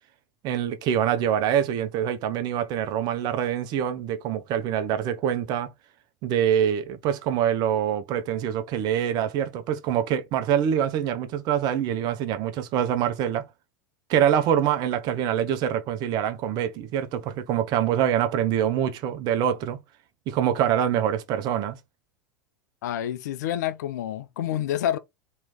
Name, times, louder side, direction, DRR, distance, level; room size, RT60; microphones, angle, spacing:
voice 1, 0.4-5.7 6.2-13.4 14.1-19.8 20.3-21.8, right 9 dB, 40° right, 0.7 m, -25 dB
voice 2, 22.8-25.0, left 11 dB, 60° left, 0.5 m, -28 dB
3.2 x 3.0 x 3.7 m
figure-of-eight pair, 80°, 10 cm